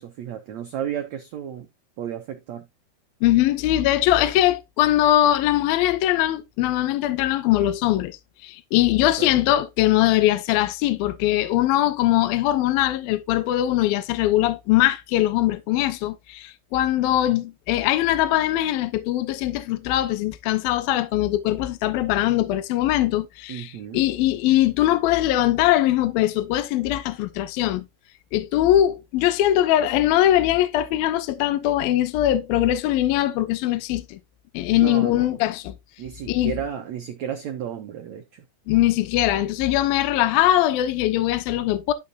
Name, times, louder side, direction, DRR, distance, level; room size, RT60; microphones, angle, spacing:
voice 1, 0.0-1.7 2.0-2.7 9.2-9.4 23.5-24.0 34.7-35.3 36.0-38.4, right 9 dB, 80° right, 1.6 m, -33 dB
voice 2, 3.2-8.2 8.4-27.9 28.3-34.2 34.5-35.7 36.3-36.5 38.7-41.9, left 13 dB, 75° left, 2.5 m, -21 dB
11.5 x 6.9 x 2.8 m
omnidirectional pair, 4.7 m